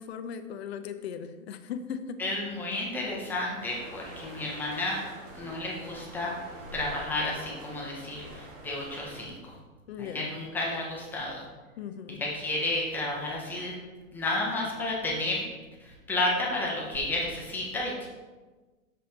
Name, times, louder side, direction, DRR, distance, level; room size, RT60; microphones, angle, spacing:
voice 1, 0.0-2.2 9.9-10.3 11.8-12.2, left 7 dB, 50° left, 9 dB, 0.6 m, -38 dB
voice 2, 2.2-5.0 5.3-6.4 6.7-9.5 10.0-11.4 12.2-13.7 14.1-15.4 15.8-18.1, left 2 dB, 5° left, -4 dB, 0.6 m, -31 dB
sound 1, 3.6-9.3, right 1 dB, 60° right, 2.3 m, -46 dB
6.3 x 5.2 x 4.3 m, 1.3 s
hypercardioid pair, 160°, 42 cm